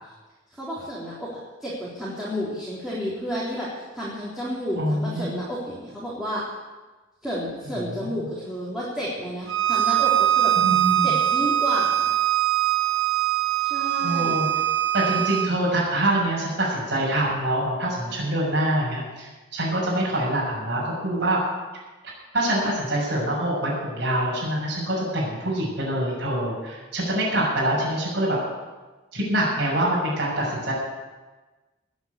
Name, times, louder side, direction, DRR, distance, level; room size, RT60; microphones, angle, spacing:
voice 1, 0.5-1.3 1.6-6.4 7.2-10.5 11.0-12.2 13.6-14.5, equal, ahead, -9 dB, 3.8 m, -31 dB
voice 2, 4.8-5.4 8.0-8.1 10.6-11.1 14.0-14.5 14.9-21.4 22.3-28.4 29.1-30.7, right 1 dB, 60° right, -6 dB, 6.7 m, -25 dB
Bowed string instrument, 9.5-15.5, right 12 dB, 80° right, 1.4 m, -22 dB
20.0 x 8.1 x 8.2 m, 1.2 s
head